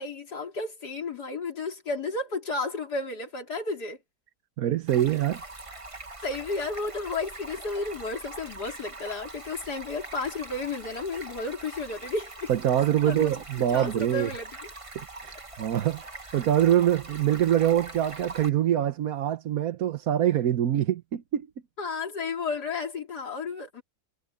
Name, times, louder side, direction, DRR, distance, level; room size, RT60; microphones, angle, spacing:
voice 1, 0.0-4.0 6.2-12.5 13.0-13.3 13.7-14.7 21.8-23.8, left 3 dB, 85° left, 3.8 m, -32 dB
voice 2, 4.6-5.4 12.5-14.3 14.9-16.0 16.3-21.5, right 11 dB, 70° right, 1.3 m, -24 dB
Stream, 4.9-18.5, right 2 dB, 20° right, 1.5 m, -43 dB
omnidirectional pair, 1.7 m